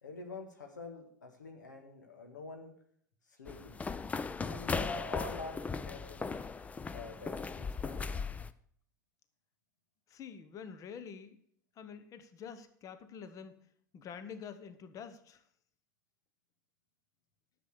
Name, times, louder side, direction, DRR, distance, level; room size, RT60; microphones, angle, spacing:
voice 1, 0.0-2.7 3.3-3.8 4.4-6.3 6.9-8.2, left 2 dB, 80° left, 4 dB, 1.7 m, -46 dB
sound 1, 3.5-8.5, left 4 dB, 15° left, 0.5 m, -38 dB
voice 2, 10.1-11.4 11.8-13.6 13.9-15.4, left 7 dB, 35° left, 12 dB, 1.1 m, -47 dB
11.5 x 7.0 x 6.6 m, 0.64 s
figure-of-eight pair, 85°, 10 cm